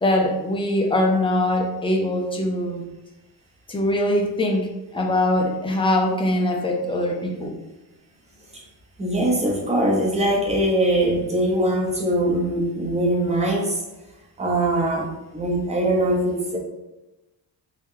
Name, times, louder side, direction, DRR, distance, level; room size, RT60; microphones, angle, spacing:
voice 1, 0.0-2.8 3.7-7.6, left 1 dB, 15° left, 1 dB, 0.4 m, -22 dB
voice 2, 9.0-13.8 14.4-16.6, right 1 dB, 15° right, -2 dB, 0.7 m, -22 dB
3.0 x 2.7 x 3.6 m, 1.0 s
wide cardioid pair, 160°, 37 cm